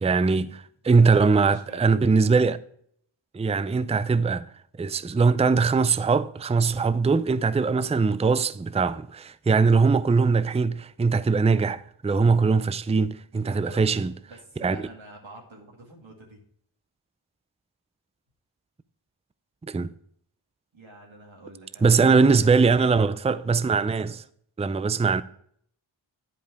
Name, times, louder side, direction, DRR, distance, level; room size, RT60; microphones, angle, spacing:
voice 1, 0.0-2.6 3.3-4.5 4.8-14.1 14.6-14.8 19.7-19.9 21.8-24.2 24.6-25.2, right 4 dB, 15° right, 0.4 m, -21 dB
voice 2, 1.0-1.9 13.3-16.4 20.7-23.1, right 2 dB, 65° right, 2.3 m, -46 dB
10.5 x 5.3 x 4.7 m
cardioid pair, 45°, 50 cm